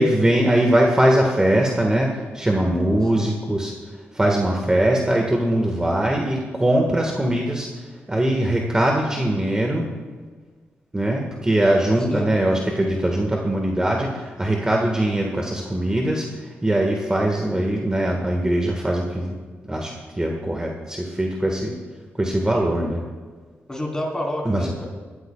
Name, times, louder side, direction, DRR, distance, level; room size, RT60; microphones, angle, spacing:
voice 1, 0.0-3.7 4.1-7.7 8.1-9.9 10.9-19.4 19.7-21.7 22.2-23.0 24.4-24.7, right 1 dB, 15° right, 0 dB, 1.6 m, -21 dB
voice 2, 23.7-24.8, left 1 dB, 15° left, -2 dB, 3.8 m, -28 dB
17.5 x 13.0 x 2.4 m, 1.5 s
cardioid pair, 80°, 4 cm